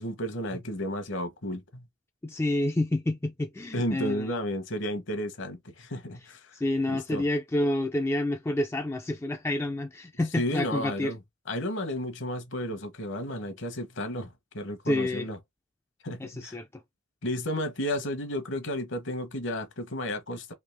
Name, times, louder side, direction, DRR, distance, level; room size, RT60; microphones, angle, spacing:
voice 1, 0.0-1.9 3.7-6.5 6.9-7.2 10.3-11.2 11.5-15.4 16.0-16.6 17.2-20.5, equal, 60° left, 1.0 m, -33 dB
voice 2, 2.2-4.3 6.5-11.1 14.9-15.3 16.2-16.7, left 1 dB, 10° left, 0.3 m, -28 dB
3.4 x 2.7 x 3.3 m
head